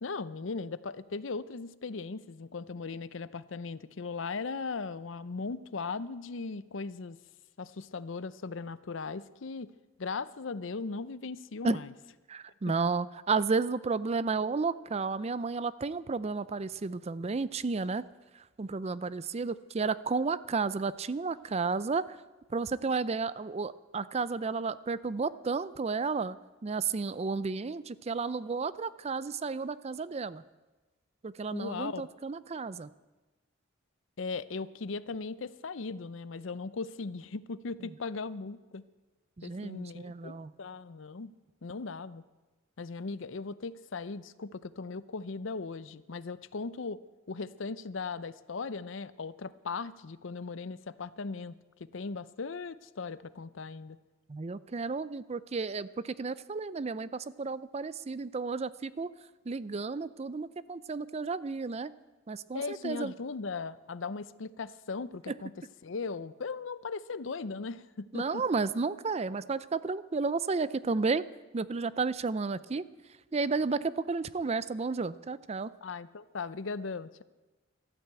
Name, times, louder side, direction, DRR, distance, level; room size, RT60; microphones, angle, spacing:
voice 1, 0.0-7.2 7.6-9.7 10.0-11.9 31.5-32.0 34.2-38.8 39.4-41.3 41.6-42.2 42.8-47.0 47.3-54.0 62.5-65.5 65.8-68.4 75.8-77.2, left 4 dB, 70° left, 16 dB, 0.6 m, -38 dB
voice 2, 12.3-18.0 18.6-22.2 22.5-26.4 26.6-30.4 31.2-32.9 39.4-40.5 54.3-59.1 59.5-61.9 62.3-63.1 65.3-65.4 68.1-71.2 71.5-72.8 73.3-75.7, right 4 dB, 30° right, 17 dB, 0.4 m, -32 dB
13.5 x 12.5 x 8.1 m, 1.2 s
head